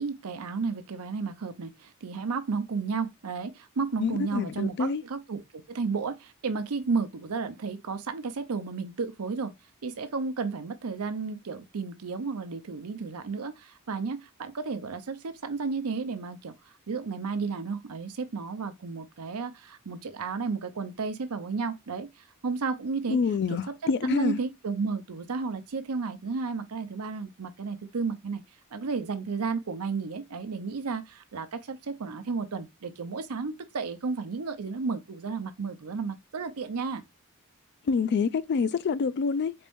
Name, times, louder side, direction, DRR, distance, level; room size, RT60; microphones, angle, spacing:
voice 1, 0.0-9.5 9.8-16.5 16.9-22.1 22.4-23.2 24.0-28.4 28.7-37.0, right 4 dB, 80° right, 0.6 m, -32 dB
voice 2, 4.0-5.0 23.1-24.4 37.8-39.5, left 5 dB, 50° left, 0.3 m, -27 dB
4.3 x 2.6 x 3.5 m
head